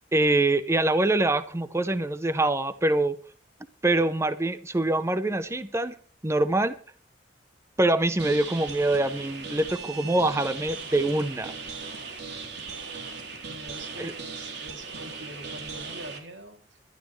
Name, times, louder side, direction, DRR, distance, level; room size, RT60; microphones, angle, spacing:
voice 1, 0.1-3.1 3.8-5.9 6.2-6.7 7.8-11.5 14.0-14.1, right 2 dB, 15° right, 0.6 m, -24 dB
sound 1, 8.2-16.2, right 5 dB, 65° right, 3.4 m, -38 dB
voice 2, 13.4-16.8, right 1 dB, 85° right, 2.8 m, -44 dB
21.5 x 12.0 x 3.2 m
head